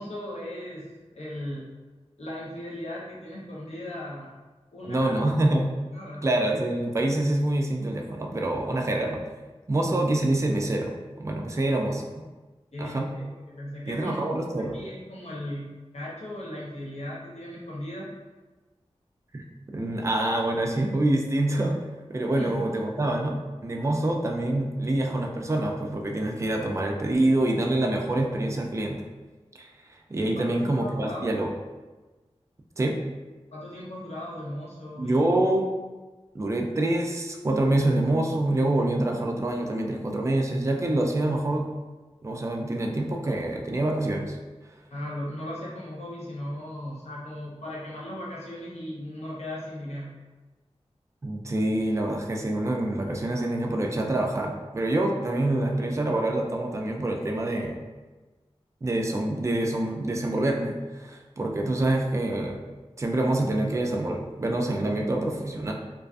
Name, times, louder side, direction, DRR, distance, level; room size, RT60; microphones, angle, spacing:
voice 1, 0.0-1.7 2.2-4.3 4.7-5.2 5.9-6.2 12.7-14.5 14.7-18.1 22.4-22.6 30.4-31.3 33.5-35.3 44.9-50.1, left 1 dB, 75° left, -6 dB, 0.7 m, -37 dB
voice 2, 4.8-5.7 6.2-9.2 9.7-10.9 11.2-12.0 12.8-13.1 13.9-14.8 19.3-19.4 19.7-21.8 22.1-29.0 29.6-31.5 32.8-33.0 35.0-35.7 36.3-41.6 42.2-44.4 51.2-57.8 58.8-62.6 63.0-65.7, right 1 dB, 25° right, 1 dB, 0.3 m, -26 dB
2.4 x 2.3 x 2.3 m, 1.2 s
wide cardioid pair, 55°, 11 cm